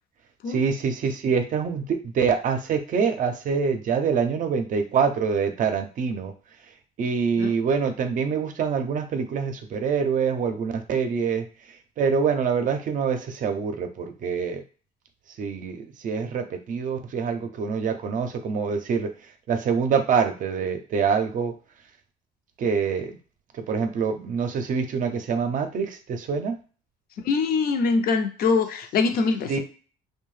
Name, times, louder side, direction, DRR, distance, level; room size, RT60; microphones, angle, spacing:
voice 1, 0.5-6.3 7.0-11.5 12.0-14.6 15.4-19.1 19.5-21.5 22.6-23.1 23.7-26.6 29.5-29.6, right 6 dB, 50° right, 7 dB, 0.5 m, -25 dB
voice 2, 27.2-29.6, left 4 dB, 60° left, 7 dB, 0.5 m, -23 dB
2.6 x 2.2 x 3.1 m, 0.38 s
cardioid pair, 110°, 17 cm